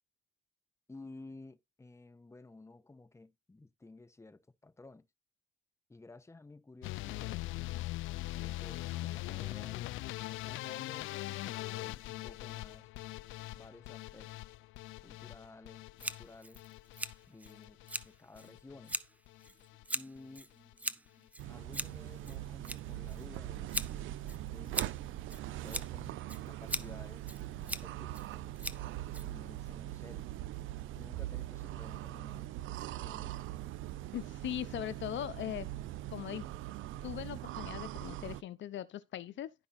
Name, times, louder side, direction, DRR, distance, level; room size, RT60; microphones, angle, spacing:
voice 1, 0.9-5.1 5.9-7.4 8.3-10.0 10.4-12.9 13.5-14.5 15.0-16.6 17.3-17.8 18.0-19.0 19.9-20.5 21.5-23.7 24.2-24.8 25.5-28.3 29.2-30.2 31.0-32.6 33.0-33.4, left 2 dB, 15° left, 1.1 m, -54 dB
sound 1, 6.8-19.0 19.3-19.8 20.2-20.7 21.1-21.3 21.6-21.7 22.0-22.1, left 17 dB, 90° left, 0.4 m, -42 dB
Scissors, 16.0-29.7, right 1 dB, 5° right, 0.8 m, -42 dB
sound 2, 21.4-38.4, right 14 dB, 80° right, 0.6 m, -42 dB
voice 2, 34.1-35.7 36.1-36.5 37.0-39.5, left 11 dB, 70° left, 0.8 m, -40 dB
11.5 x 5.4 x 4.2 m
cardioid pair, 90°, 20 cm